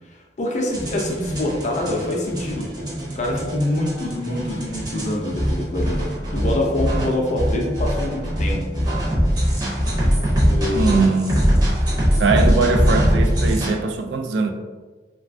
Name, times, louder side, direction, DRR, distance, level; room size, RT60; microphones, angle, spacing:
voice 1, 0.4-6.0 6.3-8.9 10.5-11.0, left 1 dB, 40° left, 0 dB, 0.5 m, -25 dB
dirty grind, 0.7-13.7, equal, 20° right, 0.6 m, -22 dB
voice 2, 10.7-11.4 12.2-14.5, right 3 dB, 75° right, 6 dB, 0.3 m, -21 dB
3.1 x 2.2 x 2.5 m, 1.3 s
head